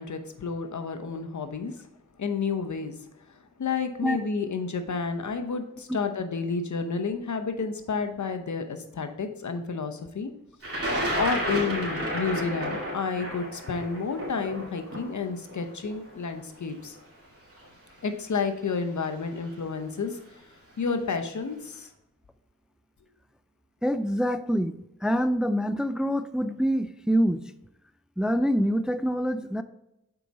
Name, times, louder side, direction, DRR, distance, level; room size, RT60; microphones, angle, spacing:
voice 1, 0.0-1.8 2.2-3.0 3.3-10.3 11.2-17.0 18.0-20.2 20.8-21.9, left 5 dB, 70° left, 7 dB, 0.8 m, -30 dB
Thunder, 10.6-16.6 17.6-17.7 18.8-19.0 19.4-19.8, equal, 50° right, 2.4 m, -31 dB
voice 2, 23.8-24.8 25.0-27.5 28.2-29.6, equal, ahead, 12 dB, 0.4 m, -25 dB
6.8 x 4.7 x 4.0 m, 0.86 s
cardioid pair, 40°, 30 cm